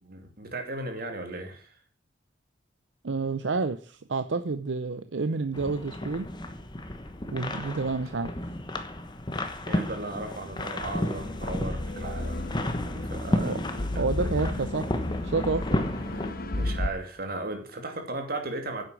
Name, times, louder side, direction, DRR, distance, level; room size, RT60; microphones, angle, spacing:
voice 1, 0.0-1.8 9.6-12.5 12.9-14.6 16.5-18.8, right 2 dB, 55° right, 5 dB, 2.6 m, -36 dB
voice 2, 3.0-6.3 7.3-8.3 13.4-13.6 14.0-14.9 15.2-15.8, right 3 dB, 80° right, 10 dB, 0.7 m, -29 dB
sound 1, 5.5-16.3, left 1 dB, 25° left, 1.2 m, -33 dB
sound 2, 10.8-16.9, left 1 dB, 55° left, 1.2 m, -33 dB
10.0 x 8.1 x 6.3 m, 0.43 s
head